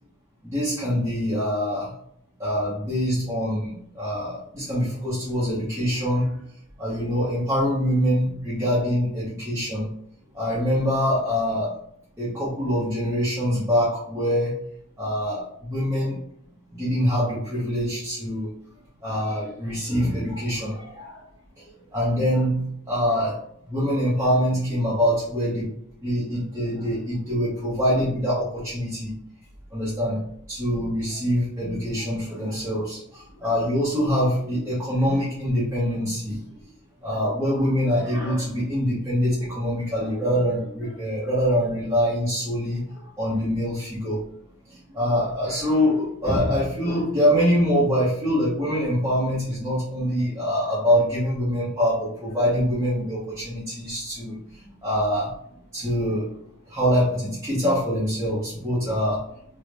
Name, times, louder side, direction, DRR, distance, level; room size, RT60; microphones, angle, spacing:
voice 1, 0.4-1.9 2.4-6.3 6.8-9.9 10.3-11.7 12.2-14.5 15.0-16.2 16.7-18.5 19.0-21.2 21.9-22.6 22.9-23.4 23.7-25.7 26.0-29.1 29.7-30.2 30.5-36.4 37.0-42.8 43.2-44.2 44.9-54.4 54.8-55.3 55.7-56.3 56.7-59.2, equal, 10° right, -10 dB, 0.9 m, -24 dB
3.7 x 2.1 x 3.3 m, 0.69 s
head